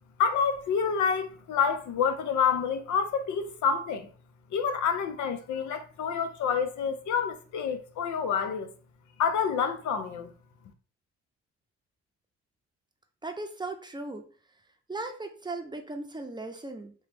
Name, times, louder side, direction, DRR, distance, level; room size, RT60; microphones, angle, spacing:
voice 1, 0.2-4.1 4.5-8.7 9.2-10.3, left 6 dB, 75° left, 0.6 m, -28 dB
voice 2, 13.2-14.3 14.9-16.9, right 2 dB, 15° right, 0.6 m, -37 dB
3.0 x 3.0 x 3.4 m
cardioid pair, 90°, 30 cm